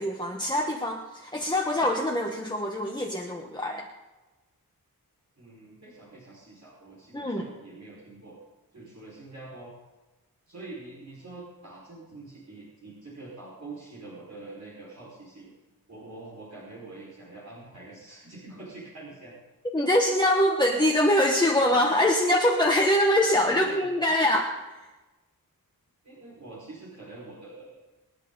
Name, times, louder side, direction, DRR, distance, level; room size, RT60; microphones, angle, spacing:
voice 1, 0.0-3.9 7.1-7.5 19.7-24.8, left 1 dB, 10° left, -1 dB, 1.5 m, -24 dB
voice 2, 5.4-8.4 8.7-9.7 10.5-15.5 15.9-19.3 23.5-23.8 24.1-24.2 26.0-27.8, right 2 dB, 50° right, -6 dB, 5.3 m, -45 dB
26.5 x 10.5 x 4.0 m, 1.1 s
wide cardioid pair, 130°, 35 cm